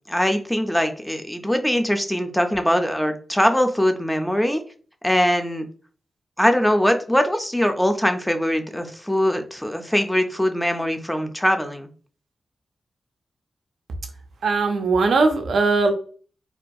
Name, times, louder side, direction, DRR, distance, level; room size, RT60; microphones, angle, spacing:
voice 1, 0.1-4.6 5.0-5.6 6.4-11.9, equal, 5° left, 6 dB, 0.3 m, -22 dB
voice 2, 14.4-15.9, right 3 dB, 85° right, 5 dB, 0.4 m, -19 dB
2.3 x 2.2 x 2.5 m, 0.41 s
wide cardioid pair, 140°, 0 cm